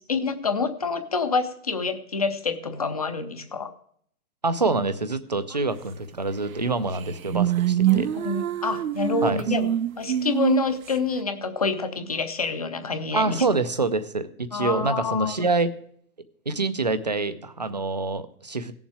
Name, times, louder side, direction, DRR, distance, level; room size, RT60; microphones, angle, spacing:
voice 1, 0.1-3.7 7.9-13.4 14.5-15.3, left 4 dB, 25° left, 9 dB, 0.7 m, -27 dB
voice 2, 4.4-8.1 9.2-9.4 13.1-15.7 16.5-18.7, right 3 dB, 30° right, 11 dB, 0.5 m, -26 dB
sound 1, 6.6-6.7 6.9-10.9, right 11 dB, 70° right, 0.7 m, -25 dB
16.5 x 7.2 x 4.7 m, 0.63 s
hypercardioid pair, 180°, 43 cm